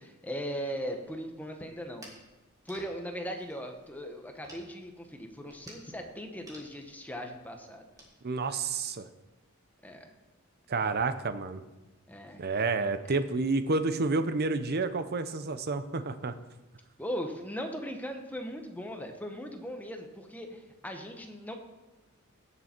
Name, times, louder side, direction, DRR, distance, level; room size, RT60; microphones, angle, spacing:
voice 1, 0.0-2.1 2.6-7.9 9.8-10.1 12.1-12.5 17.0-21.5, equal, 10° left, 4 dB, 1.1 m, -39 dB
sound 1, 0.9-8.1, right 1 dB, 15° right, 2.4 m, -56 dB
voice 2, 8.2-9.1 10.7-11.6 12.4-16.3, right 3 dB, 45° right, 11 dB, 0.7 m, -29 dB
17.5 x 6.9 x 4.5 m, 1.1 s
head